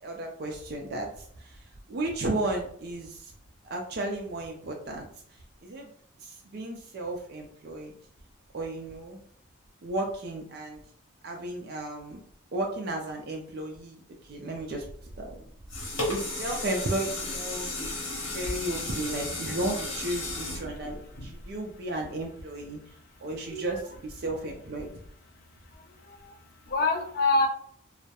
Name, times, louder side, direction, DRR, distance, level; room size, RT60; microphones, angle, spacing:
voice 1, 0.0-3.3 3.6-5.9 6.2-7.9 8.5-9.2 9.8-10.8 11.2-12.2 12.5-14.9 15.2-15.4 16.1-17.7 18.3-22.8 23.2-24.9, right 1 dB, 50° right, 0 dB, 0.4 m, -34 dB
sound 1, 15.4-21.7 22.2-22.3, left 2 dB, 80° left, 0.9 m, -34 dB
voice 2, 18.1-18.4 23.5-23.6 25.7-26.4 26.7-27.5, left 3 dB, 45° left, 4 dB, 0.4 m, -27 dB
2.2 x 2.0 x 2.8 m, 0.63 s
head